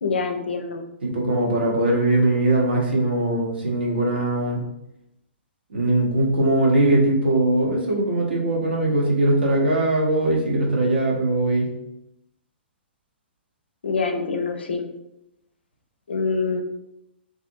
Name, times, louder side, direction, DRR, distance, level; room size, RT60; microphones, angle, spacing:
voice 1, 0.0-0.8 13.8-14.9 16.1-16.6, left 4 dB, 65° left, 5 dB, 0.4 m, -25 dB
voice 2, 1.0-4.6 5.7-11.7, right 2 dB, 65° right, -2 dB, 0.8 m, -21 dB
2.5 x 2.5 x 2.5 m, 0.86 s
figure-of-eight pair, 115°, 6 cm